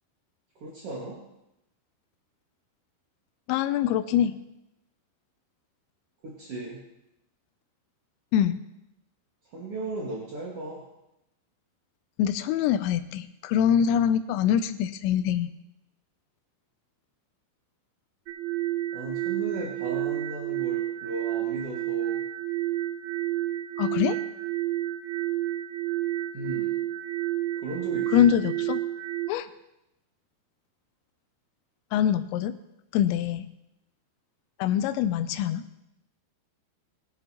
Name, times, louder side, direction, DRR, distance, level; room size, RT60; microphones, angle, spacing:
voice 1, 0.6-1.2 6.2-6.8 9.5-10.9 18.9-22.2 26.3-26.8 27.6-28.3, right 2 dB, 50° right, -4 dB, 1.8 m, -36 dB
voice 2, 3.5-4.3 8.3-8.6 12.2-15.5 23.8-24.2 28.1-28.8 29.3-29.5 31.9-32.5 32.9-33.5 34.6-35.7, left 9 dB, 90° left, 10 dB, 2.9 m, -24 dB
sound 1, 18.3-29.3, right 15 dB, 80° right, 2.2 m, -30 dB
20.5 x 10.5 x 2.9 m, 0.87 s
omnidirectional pair, 5.1 m